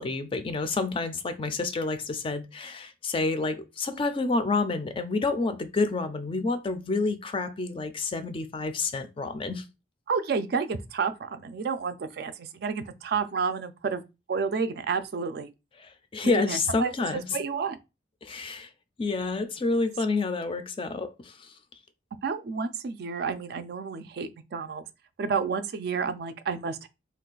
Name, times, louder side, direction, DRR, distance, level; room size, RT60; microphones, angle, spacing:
voice 1, 0.0-9.6 15.8-17.2 18.2-18.7 19.0-21.5, left 3 dB, 30° left, 0.3 m, -29 dB
voice 2, 10.1-14.0 14.3-15.5 16.2-16.9 17.3-17.8 22.2-24.8 25.2-26.9, right 5 dB, 60° right, 0.4 m, -30 dB
2.5 x 2.3 x 3.8 m
head